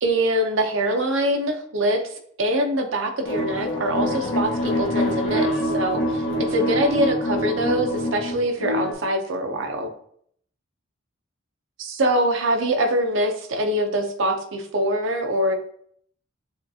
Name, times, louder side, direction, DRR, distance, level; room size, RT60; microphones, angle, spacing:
voice 1, 0.0-2.0 2.4-6.2 6.5-9.9 11.8-15.6, right 1 dB, 70° right, 5 dB, 0.7 m, -23 dB
sound 1, 3.2-8.9, equal, 65° left, 1.0 m, -25 dB
7.0 x 2.4 x 2.7 m, 0.63 s
head